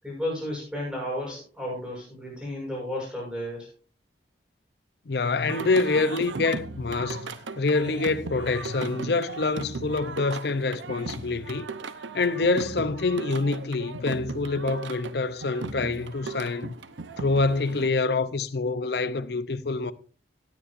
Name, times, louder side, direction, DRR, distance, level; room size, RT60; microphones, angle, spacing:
voice 1, 0.0-3.7, left 1 dB, 5° right, 7.8 m, -33 dB
voice 2, 5.1-11.7 12.1-16.8 17.2-19.9, left 3 dB, 60° left, 0.6 m, -26 dB
Singing, 5.5-17.9, right 3 dB, 80° right, 0.8 m, -37 dB
18.5 x 9.8 x 2.6 m
head